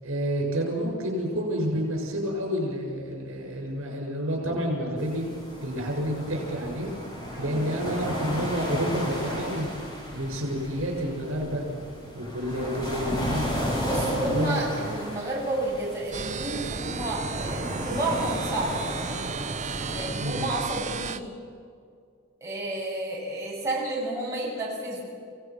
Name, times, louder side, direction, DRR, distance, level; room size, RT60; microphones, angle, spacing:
voice 1, 0.0-5.2 5.6-6.9 7.4-9.7 10.1-11.7 12.1-13.6 14.2-14.8 20.2-20.4, equal, 70° right, 1 dB, 6.8 m, -29 dB
sound 1, 5.0-20.1, equal, 20° left, 5.7 m, -34 dB
voice 2, 7.3-7.7 13.7-18.8 19.9-21.3 22.4-25.0, right 2 dB, 15° right, -6 dB, 6.9 m, -31 dB
sound 2, 16.1-21.2, right 4 dB, 35° right, 0.6 m, -33 dB
28.5 x 17.5 x 6.2 m, 2.3 s
head